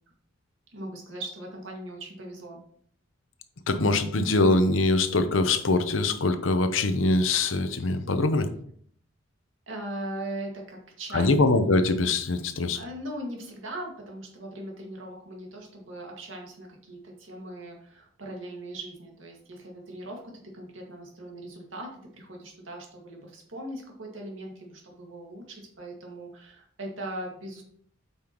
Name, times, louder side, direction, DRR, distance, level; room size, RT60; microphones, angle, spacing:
voice 1, 0.7-2.6 9.7-11.3 12.8-27.6, right 1 dB, 80° right, 0 dB, 2.0 m, -39 dB
voice 2, 3.7-8.5 11.1-12.8, left 2 dB, 85° left, 9 dB, 0.8 m, -23 dB
8.7 x 5.7 x 3.0 m, 0.62 s
head